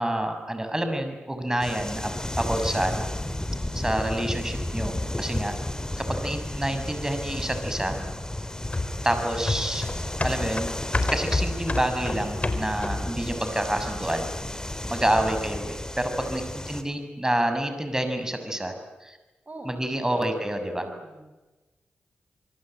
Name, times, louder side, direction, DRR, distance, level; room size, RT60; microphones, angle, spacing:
voice 1, 0.0-3.1 3.7-5.5 6.0-8.0 9.0-9.9 10.2-10.7 11.1-14.3 14.9-18.7 19.0-19.2 19.6-20.9, right 1 dB, 15° right, 7 dB, 6.6 m, -28 dB
sound 1, 1.6-16.8, left 1 dB, 15° left, 3.9 m, -33 dB
voice 2, 3.0-3.5 12.8-13.2 14.9-15.1 16.2-16.5 19.4-20.4 20.9-21.3, right 2 dB, 45° right, 5 dB, 5.1 m, -47 dB
sound 2, 8.7-13.2 13.6-13.7, left 2 dB, 35° left, 4.3 m, -29 dB
26.5 x 24.0 x 9.1 m, 1.1 s
supercardioid pair, 40°, 4 cm